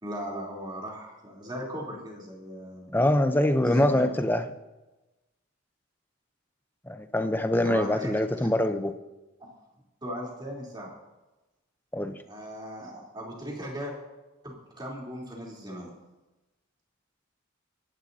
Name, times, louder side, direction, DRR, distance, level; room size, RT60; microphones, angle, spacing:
voice 1, 0.0-3.0 3.6-4.0 7.6-8.1 8.4-8.5 10.0-10.9 12.3-13.9 14.4-15.9, equal, 20° right, -3 dB, 3.4 m, -38 dB
voice 2, 2.9-4.5 6.9-8.9 11.9-12.2, left 1 dB, 10° left, 9 dB, 0.7 m, -24 dB
25.0 x 11.5 x 2.8 m, 1.1 s
head